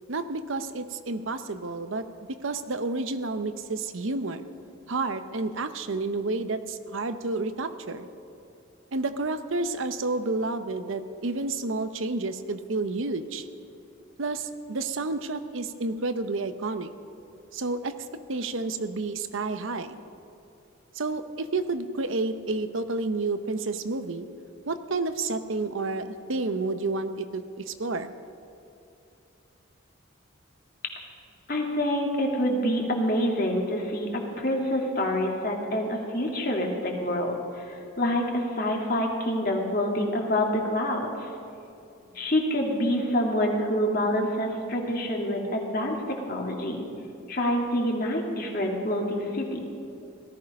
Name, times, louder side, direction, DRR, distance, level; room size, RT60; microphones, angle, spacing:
voice 1, 0.1-4.4 4.9-8.1 8.9-13.5 14.2-16.9 17.5-17.9 18.3-20.0 20.9-24.3 24.7-28.1, right 3 dB, 75° right, 10 dB, 0.8 m, -30 dB
voice 2, 31.5-41.1 42.1-46.9 47.3-49.6, left 1 dB, 45° left, 1 dB, 2.1 m, -27 dB
17.5 x 13.5 x 5.3 m, 2.7 s
head